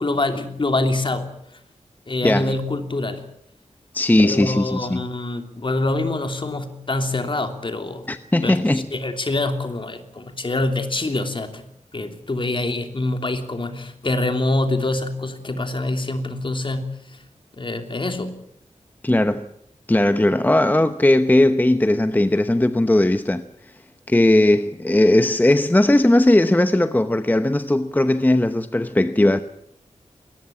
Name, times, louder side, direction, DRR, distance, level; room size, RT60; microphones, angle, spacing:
voice 1, 0.0-1.3 2.1-3.3 4.2-8.1 8.4-11.7 11.9-16.9 17.6-18.3, left 2 dB, 45° left, 3.0 m, -25 dB
voice 2, 2.2-2.5 3.9-5.0 8.1-8.9 19.0-19.5 19.9-23.4 24.1-29.4, left 1 dB, 15° left, 0.8 m, -18 dB
21.5 x 19.0 x 8.8 m
wide cardioid pair, 110°, 12 cm